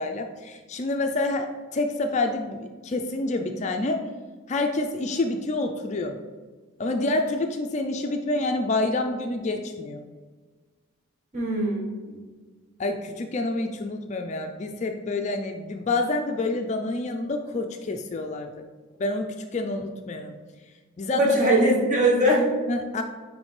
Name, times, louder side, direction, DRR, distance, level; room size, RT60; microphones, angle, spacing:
voice 1, 0.0-4.1 4.5-6.2 6.8-10.0 12.8-18.6 19.0-20.3 21.0-21.3 22.7-23.0, left 2 dB, 35° left, 4 dB, 0.3 m, -28 dB
voice 2, 11.3-12.2 21.1-22.7, right 1 dB, 35° right, -2 dB, 1.1 m, -21 dB
9.3 x 3.2 x 3.2 m, 1.4 s
head